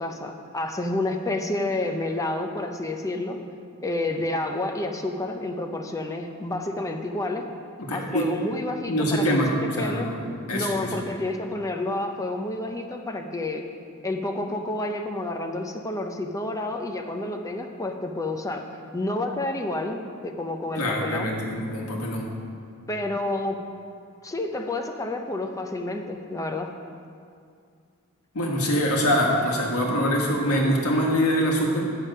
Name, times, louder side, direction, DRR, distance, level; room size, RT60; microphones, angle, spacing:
voice 1, 0.0-3.4 3.8-7.4 7.9-10.1 10.5-13.6 14.0-18.6 18.9-20.0 20.2-21.3 22.9-23.6 24.2-26.7, left 2 dB, 15° left, 4 dB, 0.6 m, -29 dB
voice 2, 7.8-8.3 8.9-10.9 20.7-22.3 28.3-32.1, equal, 85° left, -1 dB, 1.6 m, -24 dB
9.1 x 7.2 x 5.5 m, 2.3 s
head